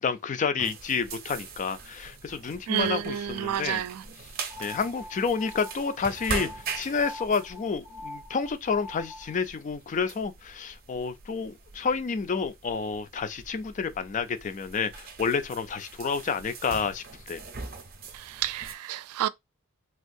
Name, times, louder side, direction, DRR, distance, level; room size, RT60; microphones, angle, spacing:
voice 1, 0.0-3.8 4.6-17.4, left 5 dB, 35° left, 0.3 m, -30 dB
sound 1, 0.6-18.7, right 4 dB, 45° right, 0.6 m, -42 dB
voice 2, 2.7-4.0 18.1-19.3, right 10 dB, 90° right, 0.3 m, -30 dB
sound 2, 4.5-9.4, left 2 dB, 80° left, 0.6 m, -43 dB
3.4 x 2.3 x 2.6 m
head